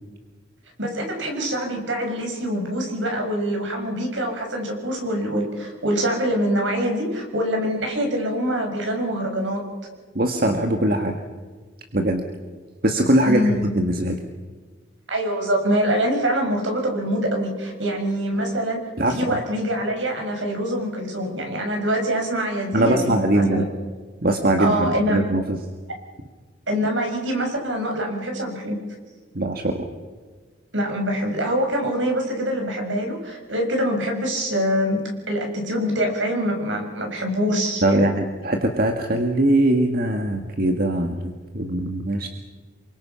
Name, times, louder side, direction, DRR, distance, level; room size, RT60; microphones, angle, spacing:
voice 1, 0.8-9.6 13.2-13.7 15.1-18.8 19.1-23.6 24.6-25.2 26.7-28.8 30.7-35.0 35.3-38.1, equal, 75° right, 2 dB, 6.4 m, -24 dB
voice 2, 10.2-11.2 11.9-12.2 12.8-14.2 19.0-19.4 22.7-23.6 24.2-25.6 29.3-29.9 37.8-42.3, right 1 dB, 50° right, 4 dB, 1.8 m, -21 dB
28.5 x 24.0 x 5.8 m, 1.4 s
head